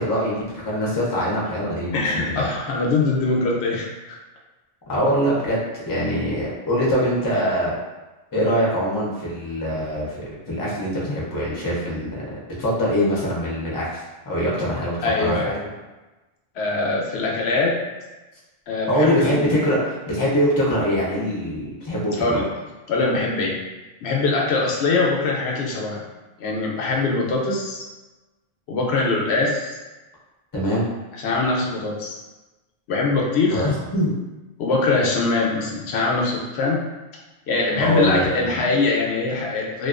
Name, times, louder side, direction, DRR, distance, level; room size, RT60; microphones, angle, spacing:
voice 1, 0.0-2.5 4.9-5.6 5.9-7.8 8.3-12.2 12.6-15.5 18.9-22.4 30.5-30.9 33.5-34.1 37.8-38.6, equal, 25° left, -5 dB, 0.5 m, -23 dB
voice 2, 1.9-4.2 15.0-15.6 16.6-17.7 18.7-19.5 22.2-22.5 22.9-23.6 24.0-26.0 26.4-27.8 28.7-29.8 31.2-32.1 32.9-33.7 34.6-36.8 37.5-39.9, left 3 dB, 80° left, -2 dB, 0.8 m, -22 dB
2.5 x 2.3 x 2.4 m, 1.1 s
omnidirectional pair, 1.1 m